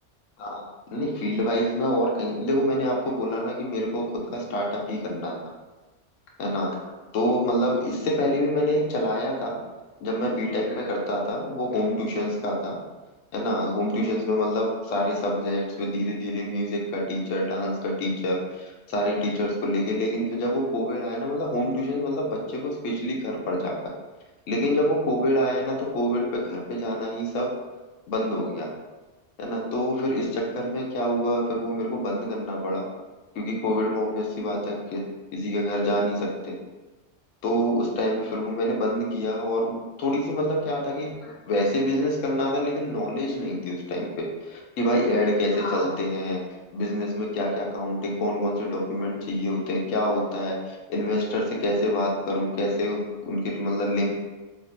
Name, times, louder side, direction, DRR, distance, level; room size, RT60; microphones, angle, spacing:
voice 1, 0.4-5.4 6.4-9.6 10.0-12.8 13.3-23.8 24.5-27.5 28.1-28.7 29.4-32.9 33.4-36.5 37.4-46.4 46.7-54.1, equal, 85° left, -1 dB, 1.0 m, -26 dB
3.2 x 2.7 x 2.7 m, 1.2 s
omnidirectional pair, 1.3 m